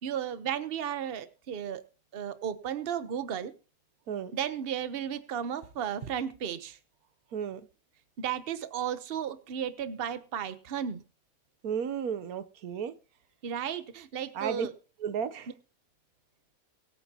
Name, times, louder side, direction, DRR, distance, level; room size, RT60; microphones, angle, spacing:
voice 1, 0.0-1.8 2.1-3.5 4.3-6.8 8.2-11.0 13.4-14.7, right 9 dB, 45° right, 12 dB, 1.0 m, -34 dB
voice 2, 7.3-7.7 11.6-12.9 14.3-14.7 15.0-15.5, right 7 dB, 85° right, 13 dB, 1.4 m, -33 dB
24.0 x 9.1 x 2.9 m, 0.36 s
omnidirectional pair, 1.5 m